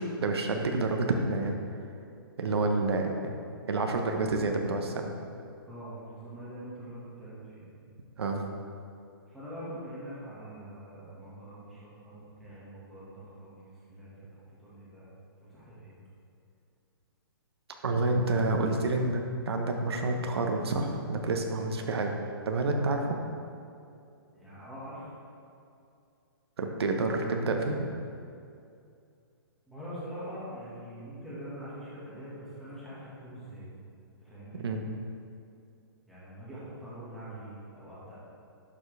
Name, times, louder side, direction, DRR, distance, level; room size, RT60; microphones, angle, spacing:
voice 1, 0.0-1.5 2.4-3.3 3.7-5.1 8.2-8.4 17.8-22.2 22.5-23.2 26.6-27.8 34.6-34.8, right 2 dB, 85° right, 3 dB, 1.1 m, -28 dB
voice 2, 5.6-7.6 9.3-11.8 12.0-13.6 13.9-14.3 14.6-15.1 15.4-15.9 21.8-21.9 22.8-23.0 24.3-25.1 29.7-33.7 34.2-34.6 36.1-38.2, equal, ahead, -11 dB, 1.7 m, -44 dB
11.5 x 7.3 x 3.4 m, 2.5 s
hypercardioid pair, 175°, 13 cm